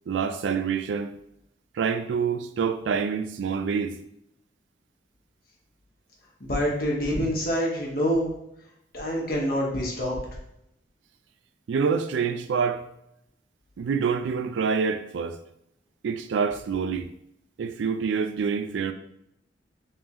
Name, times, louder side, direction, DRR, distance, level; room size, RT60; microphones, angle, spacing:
voice 1, 0.1-1.2 1.7-4.0 11.7-12.8 13.8-15.4 16.0-17.1 17.6-18.9, right 6 dB, 90° right, 0.3 m, -26 dB
voice 2, 6.4-8.3 8.9-10.2, equal, 55° left, 1.0 m, -26 dB
3.5 x 3.3 x 2.9 m
head